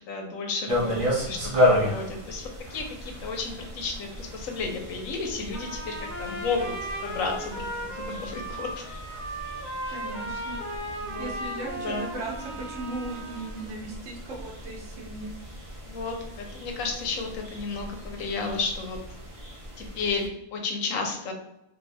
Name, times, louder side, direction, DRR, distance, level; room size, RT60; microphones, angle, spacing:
voice 1, 0.1-6.6 7.0-7.7 7.9-8.8 9.9-10.0 11.0-11.3 11.7-12.1 15.9-19.0 19.8-21.3, left 4 dB, 75° left, 2 dB, 1.1 m, -32 dB
sound 1, 0.7-20.3, left 1 dB, 35° right, 0.6 m, -33 dB
Trumpet, 5.5-13.6, right 1 dB, 35° left, 0.9 m, -36 dB
voice 2, 9.9-10.6 11.2-15.3, right 2 dB, 60° right, -1 dB, 1.2 m, -37 dB
2.7 x 2.7 x 3.2 m, 0.85 s
omnidirectional pair, 1.5 m